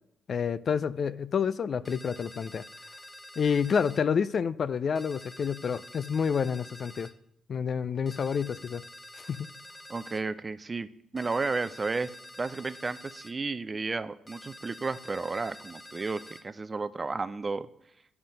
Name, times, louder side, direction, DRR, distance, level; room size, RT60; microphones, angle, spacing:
voice 1, 0.3-2.6 3.4-7.1 7.5-8.8 9.2-9.5, left 6 dB, 50° left, 16 dB, 0.3 m, -29 dB
sound 1, 1.9-4.0 5.0-7.1 8.1-10.3 11.2-13.4 14.3-16.5, left 1 dB, 15° left, 0.6 m, -48 dB
voice 2, 9.9-10.9 11.1-12.1 12.4-17.7, right 3 dB, 30° right, 13 dB, 0.5 m, -32 dB
9.6 x 5.8 x 5.2 m, 0.75 s
cardioid pair, 90°, 0 cm